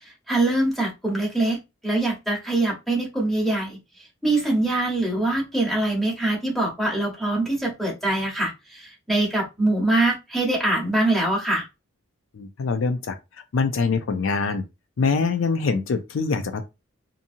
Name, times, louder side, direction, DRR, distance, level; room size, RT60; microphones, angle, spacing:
voice 1, 0.0-3.8 4.2-11.6, right 2 dB, ahead, 1.0 m, -23 dB
voice 2, 12.3-13.2 13.5-14.6 15.0-16.6, left 4 dB, 70° left, 0.4 m, -24 dB
2.7 x 2.6 x 2.6 m
head